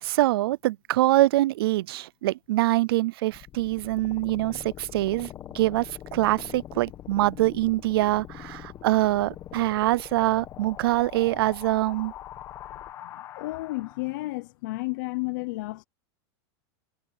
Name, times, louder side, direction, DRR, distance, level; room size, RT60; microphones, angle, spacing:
voice 1, 0.0-12.1, right 17 dB, 60° right, 0.5 m, -24 dB
sound 1, 3.3-14.3, left 12 dB, 20° left, 1.2 m, -43 dB
voice 2, 13.0-15.8, left 21 dB, 45° left, 0.7 m, -32 dB
supercardioid pair, 175°, 14 cm